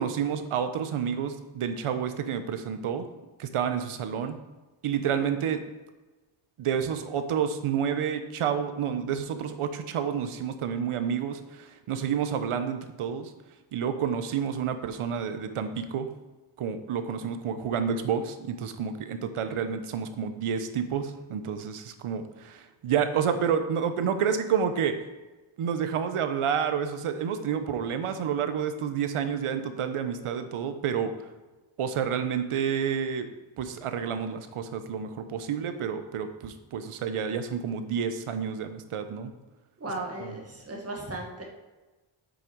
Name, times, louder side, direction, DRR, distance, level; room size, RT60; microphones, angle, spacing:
voice 1, 0.0-3.0 3.4-4.4 4.8-5.6 6.6-13.3 13.7-16.1 16.6-25.0 25.6-31.1 31.8-33.3 33.6-39.3 40.2-40.3, right 7 dB, 80° right, 9 dB, 0.9 m, -29 dB
voice 2, 39.8-41.4, right 2 dB, 30° right, -1 dB, 1.8 m, -36 dB
8.3 x 6.5 x 4.6 m, 1.2 s
wide cardioid pair, 145°, 50 cm